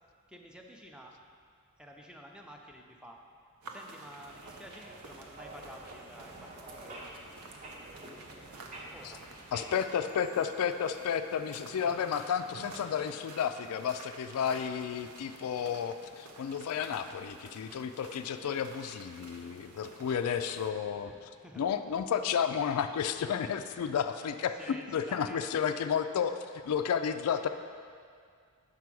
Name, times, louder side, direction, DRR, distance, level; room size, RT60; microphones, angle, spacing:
voice 1, 0.3-1.2 1.8-3.2 3.7-7.0 8.9-9.2 21.4-21.6 24.2-25.5, equal, 5° right, 1 dB, 0.5 m, -50 dB
sound 1, 3.6-20.7, right 3 dB, 80° right, 0.7 m, -51 dB
sound 2, 4.2-9.7, right 1 dB, 35° right, 0.8 m, -49 dB
voice 2, 9.5-21.1 21.6-24.5 24.9-26.4 26.6-27.5, left 7 dB, 75° left, 9 dB, 0.3 m, -32 dB
5.9 x 4.7 x 6.1 m, 2.1 s
head